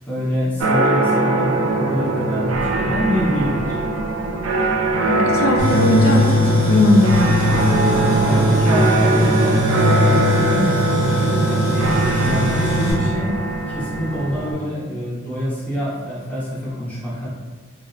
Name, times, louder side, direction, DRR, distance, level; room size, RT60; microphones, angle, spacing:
voice 1, 0.1-3.7 8.2-10.7 11.4-11.8 12.2-13.3 13.7-17.3, equal, 10° left, -8 dB, 0.6 m, -25 dB
sound 1, 0.6-14.5, right 2 dB, 90° right, 0.3 m, -21 dB
voice 2, 5.1-7.8, left 1 dB, 85° left, 1 dB, 0.4 m, -18 dB
Tools, 5.6-12.9, left 1 dB, 40° left, 0.9 m, -19 dB
2.8 x 2.0 x 2.4 m, 1.4 s
head